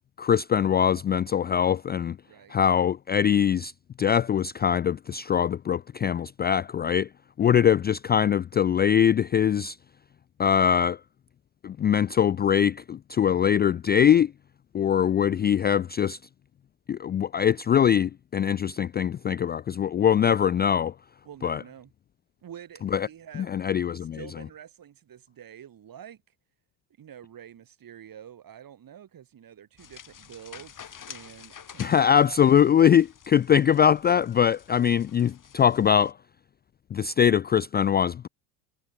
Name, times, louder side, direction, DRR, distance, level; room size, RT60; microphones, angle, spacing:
voice 1, 0.2-2.2 2.5-3.7 4.0-7.1 7.4-9.8 10.4-11.0 11.6-14.3 14.7-16.2 16.9-20.9 21.4-21.6 22.9-23.1 23.4-24.2 31.8-36.1 36.9-38.3, left 8 dB, 20° left, 0.4 m, -22 dB
voice 2, 2.2-2.6 7.4-7.7 21.2-21.9 22.4-23.5 24.0-26.2 27.0-32.5, right 9 dB, 45° right, 6.4 m, -47 dB
sound 1, 29.8-36.1, left 8 dB, 40° left, 6.8 m, -48 dB
supercardioid pair, 80°, 48 cm